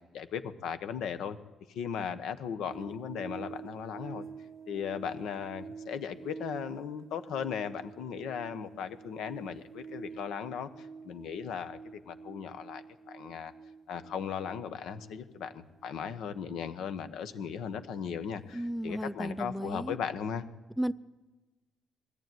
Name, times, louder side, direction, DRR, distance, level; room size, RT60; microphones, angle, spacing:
voice 1, 0.1-1.4 1.7-4.3 4.7-13.5 13.9-20.5, left 7 dB, 80° left, 10 dB, 1.2 m, -37 dB
sound 1, 2.7-19.2 19.5-19.7, right 5 dB, 45° right, 0.7 m, -48 dB
voice 2, 18.5-20.0 20.8-20.9, equal, ahead, 15 dB, 0.6 m, -34 dB
20.0 x 14.5 x 9.3 m, 1.2 s
cardioid pair, 90°, 0 cm